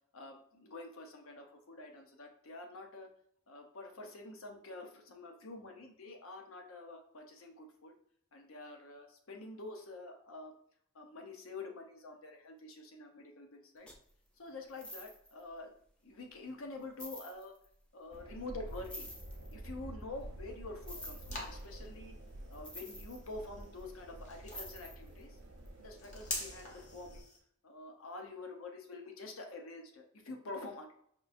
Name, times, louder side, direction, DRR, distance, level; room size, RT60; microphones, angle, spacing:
voice 1, 0.1-3.1 3.5-7.9 8.3-10.5 10.9-13.9 14.4-15.7 16.0-17.5 17.9-19.1 19.5-22.1 22.5-25.4 25.8-27.3 27.6-30.9, left 2 dB, 70° left, 3 dB, 0.7 m, -47 dB
sound 1, 13.9-14.1 14.6-15.4 16.2-16.3 16.8-17.7 18.7-19.5 20.8-21.7 22.5-23.8 24.5-25.2 25.7-25.8, left 1 dB, 5° left, 0.4 m, -49 dB
sound 2, 18.1-27.2, right 1 dB, 65° right, 0.5 m, -49 dB
sound 3, 20.2-27.4, left 2 dB, 35° left, 0.8 m, -47 dB
5.2 x 2.5 x 2.4 m, 0.68 s
head